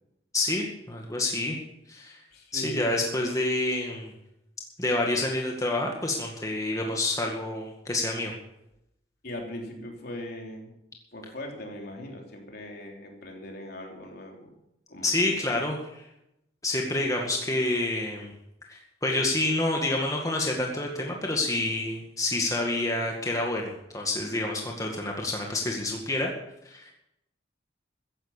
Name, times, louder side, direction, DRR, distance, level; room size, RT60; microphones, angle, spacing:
voice 1, 0.3-1.6 1.9-2.2 2.5-4.1 4.8-8.3 15.0-16.0 16.6-18.3 18.7-26.3 26.6-26.9, left 2 dB, 20° left, 0 dB, 2.0 m, -28 dB
voice 2, 2.3-3.2 9.2-10.8 11.1-14.5 14.9-15.5, left 1 dB, 55° left, 1 dB, 3.3 m, -40 dB
15.0 x 11.0 x 7.2 m, 0.84 s
head